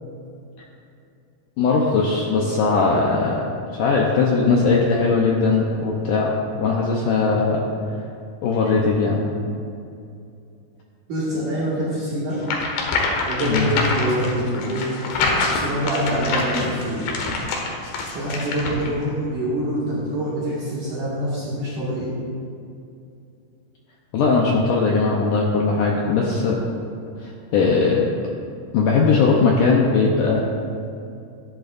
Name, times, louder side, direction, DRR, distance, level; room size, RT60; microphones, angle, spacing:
voice 1, 1.6-3.5 3.7-6.3 6.6-7.7 8.4-9.2 13.4-13.7 24.1-26.6 27.2-28.1 28.7-30.4, left 4 dB, 85° left, -3 dB, 1.8 m, -19 dB
voice 2, 11.1-12.4 13.3-14.9 15.5-17.1 18.1-22.2, right 1 dB, 55° right, -9 dB, 3.2 m, -25 dB
Paper Rattling, 12.4-18.9, left 3 dB, 70° left, 2.9 m, -25 dB
15.5 x 10.5 x 2.6 m, 2.5 s
omnidirectional pair, 4.9 m